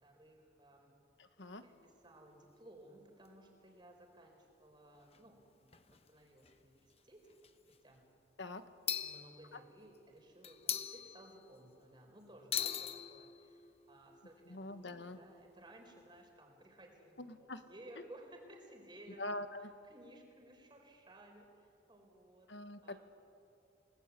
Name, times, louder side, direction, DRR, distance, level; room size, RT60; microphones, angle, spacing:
voice 1, 0.0-0.9 1.6-1.8 2.0-5.7 6.1-6.8 7.1-7.2 7.8-8.0 9.0-13.3 13.9-19.4 19.8-21.5 21.9-22.5 22.8-23.0, right 1 dB, 25° right, 2 dB, 4.3 m, -57 dB
voice 2, 1.2-1.6 8.4-8.6 14.5-15.2 17.2-17.6 19.2-19.7 22.5-23.0, left 2 dB, 85° left, 9 dB, 1.5 m, -44 dB
sound 1, 1.4-2.5 3.2-3.3 3.5-3.6 5.1-5.2 5.7-6.1 6.4-6.6 7.3-7.8 8.9-10.0 10.4-11.7 12.5-16.3, left 9 dB, 35° left, 1.0 m, -43 dB
28.5 x 19.5 x 8.3 m, 2.5 s
head